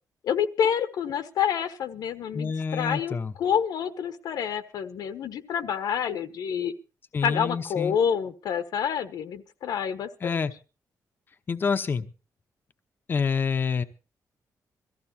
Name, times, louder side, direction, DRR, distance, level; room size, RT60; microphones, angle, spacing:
voice 1, 0.2-6.7 7.2-10.3, left 8 dB, 85° left, 9 dB, 1.3 m, -28 dB
voice 2, 2.3-3.3 7.1-8.0 10.2-10.5 11.5-12.1 13.1-13.8, left 5 dB, 30° left, 8 dB, 0.9 m, -27 dB
22.5 x 14.5 x 2.8 m, 0.32 s
wide cardioid pair, 170°, 6 cm